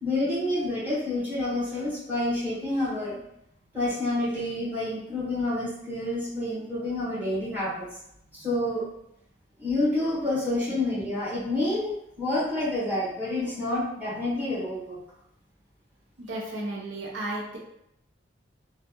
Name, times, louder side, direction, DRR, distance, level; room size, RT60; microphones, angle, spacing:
voice 1, 0.0-3.2 3.7-7.9 8.3-8.8 9.6-15.0, left 1 dB, 10° right, -10 dB, 1.3 m, -28 dB
voice 2, 16.2-17.6, right 2 dB, 80° right, -2 dB, 0.7 m, -34 dB
3.2 x 2.4 x 2.9 m, 0.79 s
head